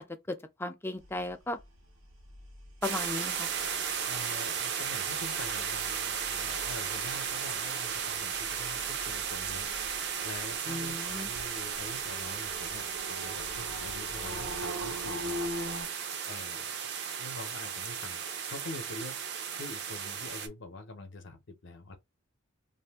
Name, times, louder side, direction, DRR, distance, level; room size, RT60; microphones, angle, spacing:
voice 1, 0.3-1.6 2.8-3.5 10.7-11.3, left 2 dB, 10° left, 0.4 m, -35 dB
sound 1, 1.0-15.9, equal, 85° right, 1.0 m, -43 dB
sound 2, 2.8-20.5, right 7 dB, 55° right, 0.6 m, -35 dB
voice 2, 4.1-15.5 16.3-16.7 17.2-18.2 18.5-19.2 19.6-22.0, left 2 dB, 60° left, 0.6 m, -45 dB
2.6 x 2.5 x 3.4 m
head